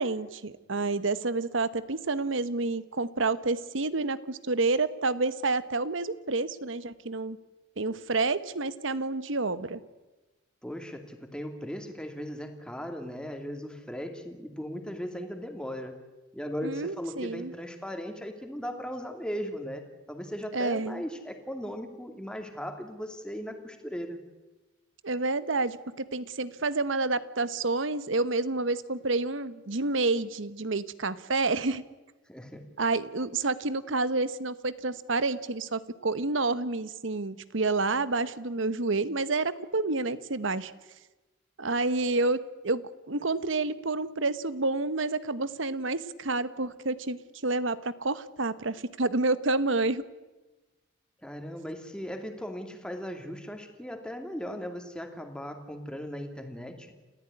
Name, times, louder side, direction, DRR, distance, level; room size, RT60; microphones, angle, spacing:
voice 1, 0.0-7.4 7.8-9.8 16.6-17.5 20.5-21.0 25.0-31.8 32.8-40.7 41.6-42.8 43.1-50.0, right 3 dB, 70° right, 15 dB, 1.1 m, -29 dB
voice 2, 10.6-15.9 16.3-24.2 32.3-32.7 51.2-56.9, equal, 5° left, 5 dB, 2.6 m, -38 dB
29.0 x 14.5 x 9.8 m, 1.2 s
head